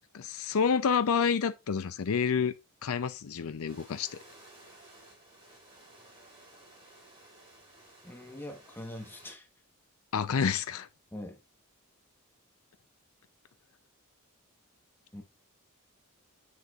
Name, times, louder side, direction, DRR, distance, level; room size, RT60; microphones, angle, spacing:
voice 1, 0.1-2.5 2.8-4.2 10.1-10.9, left 6 dB, 70° left, 0.5 m, -28 dB
sound 1, 3.7-9.3, right 2 dB, 25° right, 4.4 m, -56 dB
voice 2, 8.0-9.5 11.1-11.4 15.1-15.2, left 1 dB, 10° left, 1.1 m, -43 dB
7.4 x 6.3 x 2.4 m
head